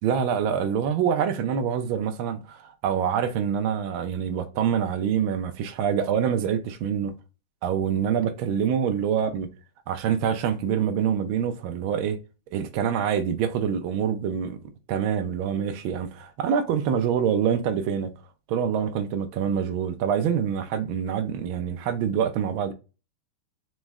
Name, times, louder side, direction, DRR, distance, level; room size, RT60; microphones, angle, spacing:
voice 1, 0.0-7.1 7.6-9.5 9.9-12.2 12.5-14.6 14.9-18.1 18.5-22.7, right 8 dB, 75° right, 1.4 m, -25 dB
4.8 x 3.2 x 3.1 m
omnidirectional pair, 2.4 m